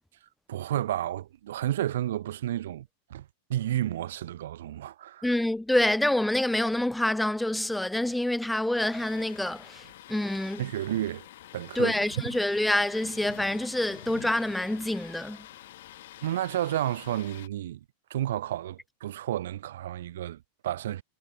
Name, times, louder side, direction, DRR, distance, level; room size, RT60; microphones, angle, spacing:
voice 1, 0.5-3.2 3.5-5.3 10.6-11.3 11.5-11.9 16.2-17.8 18.1-21.0, right 12 dB, 60° right, 0.7 m, -31 dB
voice 2, 5.2-10.6 11.7-15.4, left 1 dB, 5° left, 0.5 m, -27 dB
Thunder, 8.9-17.5, left 14 dB, 55° left, 1.4 m, -47 dB
figure-of-eight pair, 90°, 0 cm